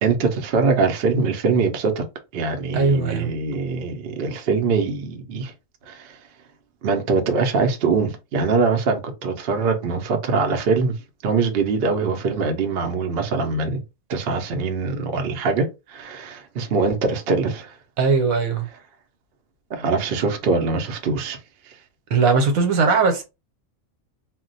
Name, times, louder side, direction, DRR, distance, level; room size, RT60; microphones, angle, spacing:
voice 1, 0.0-2.0 2.3-5.5 5.9-6.2 6.8-11.0 11.2-13.8 14.1-17.7 19.7-21.4, right 4 dB, 55° right, 0.7 m, -23 dB
voice 2, 2.7-3.3 18.0-18.7 22.1-23.2, right 4 dB, 80° right, 1.2 m, -19 dB
2.3 x 2.1 x 3.9 m
omnidirectional pair, 1.4 m